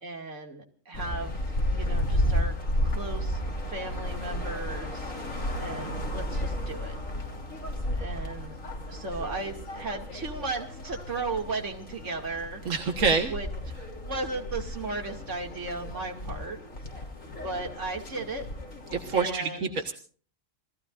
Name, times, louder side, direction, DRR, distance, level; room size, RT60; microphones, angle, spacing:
voice 1, 0.0-1.3 1.7-2.6 2.8-3.4 3.7-5.1 5.6-7.0 7.9-8.5 8.9-12.7 13.3-13.5 14.0-16.6 17.2-18.5 19.1-19.7, right 3 dB, 65° right, 3 dB, 2.8 m, -35 dB
sound 1, 0.9-19.3, left 1 dB, 85° left, 3.6 m, -33 dB
voice 2, 12.7-13.3 18.9-19.9, right 5 dB, 90° right, 4 dB, 1.9 m, -26 dB
28.0 x 18.0 x 2.6 m, 0.44 s
omnidirectional pair, 1.3 m